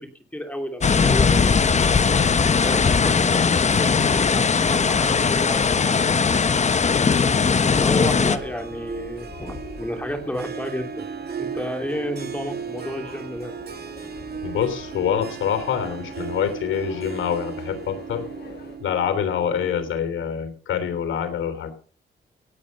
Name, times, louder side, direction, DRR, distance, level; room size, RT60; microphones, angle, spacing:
voice 1, 0.0-1.6 2.6-6.6 7.8-11.1 11.4-13.5, equal, 5° left, 5 dB, 2.8 m, -32 dB
sound 1, 0.8-8.4, left 5 dB, 35° left, 1.0 m, -19 dB
sound 2, 4.5-18.8, left 4 dB, 55° left, 6.8 m, -43 dB
Harp, 7.9-20.1, right 6 dB, 55° right, 1.8 m, -36 dB
voice 2, 14.4-18.3 18.8-21.7, left 8 dB, 85° left, 9 dB, 3.4 m, -26 dB
17.5 x 8.6 x 5.3 m, 0.44 s
cardioid pair, 90°, 20 cm